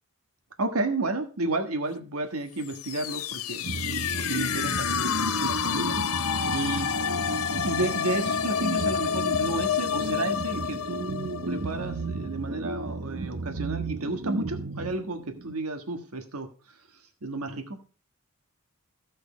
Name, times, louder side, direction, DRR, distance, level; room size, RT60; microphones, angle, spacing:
voice 1, 0.6-3.6 4.3-5.9 6.5-6.9 7.6-16.5 17.2-17.8, right 2 dB, 80° right, 5 dB, 1.5 m, -32 dB
sound 1, 2.6-12.3, left 8 dB, 70° left, 0.6 m, -29 dB
sound 2, 3.6-15.5, right 3 dB, 60° right, 0.7 m, -34 dB
15.0 x 6.4 x 4.9 m, 0.37 s
head